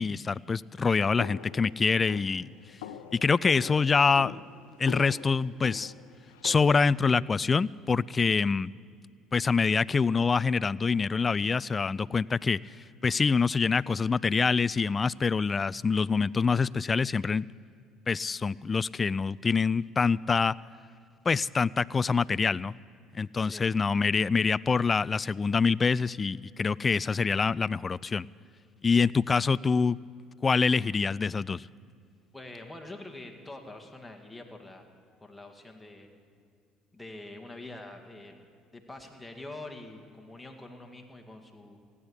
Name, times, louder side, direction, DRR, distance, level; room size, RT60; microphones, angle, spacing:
voice 1, 0.0-2.5 3.1-4.4 4.8-5.9 6.4-8.7 9.3-12.6 13.0-17.5 18.1-20.5 21.3-22.7 23.1-28.3 28.8-30.0 30.4-31.6, left 5 dB, 30° left, 21 dB, 0.3 m, -25 dB
sound 1, 1.2-6.9, left 9 dB, 90° left, 0.8 m, -44 dB
voice 2, 32.3-34.9 35.2-36.1 36.9-38.5 38.7-41.8, left 2 dB, 10° left, 3 dB, 2.1 m, -45 dB
15.5 x 9.8 x 8.7 m, 2.3 s
hypercardioid pair, 70°, 0 cm